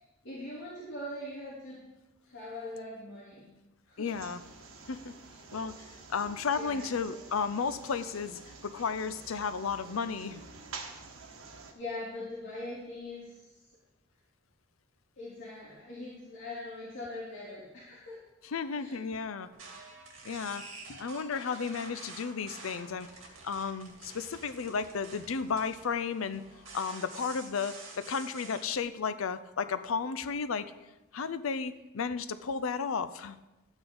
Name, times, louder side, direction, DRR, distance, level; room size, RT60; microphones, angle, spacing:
voice 1, 0.2-1.8 2.2-3.5 3.8-4.1 6.6-7.2 11.7-13.5 15.2-18.2 18.8-19.0, left 2 dB, 60° left, -10 dB, 3.1 m, -42 dB
voice 2, 4.0-4.4 4.9-5.1 5.5-5.7 6.1-10.4 18.4-19.5 20.2-20.6 20.9-23.1 23.4-26.4 26.7-30.7 31.1-33.4, left 5 dB, 80° left, 13 dB, 0.6 m, -33 dB
sound 1, 4.0-11.7, right 4 dB, 85° right, 1.3 m, -49 dB
sound 2, 19.5-28.8, right 3 dB, 70° right, 2.4 m, -48 dB
12.0 x 8.9 x 3.9 m, 1.1 s
head